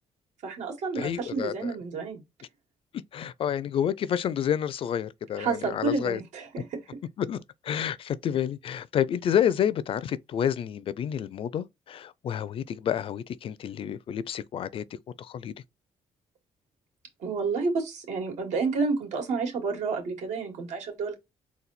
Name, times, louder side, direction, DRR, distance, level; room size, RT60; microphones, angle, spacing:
voice 1, 0.4-2.2 5.4-6.8 17.2-21.1, right 4 dB, 75° right, 2.4 m, -30 dB
voice 2, 1.0-1.7 3.1-6.2 7.2-7.4 7.7-14.8 15.3-15.5, left 9 dB, 50° left, 0.4 m, -29 dB
4.1 x 2.3 x 4.1 m
cardioid pair, 125°, 12 cm